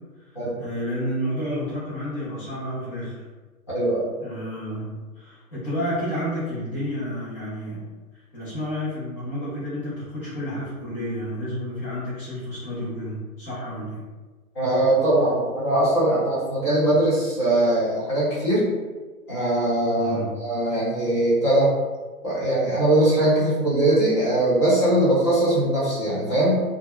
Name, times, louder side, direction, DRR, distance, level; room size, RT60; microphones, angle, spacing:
voice 1, 0.6-3.2 4.2-7.9 8.3-14.0 19.9-20.4, equal, 35° left, -12 dB, 1.1 m, -30 dB
voice 2, 3.7-4.1 14.5-18.7 19.3-21.7 22.2-26.6, right 1 dB, 20° left, -9 dB, 0.5 m, -21 dB
2.6 x 2.3 x 2.2 m, 1.3 s
hypercardioid pair, 150°, 46 cm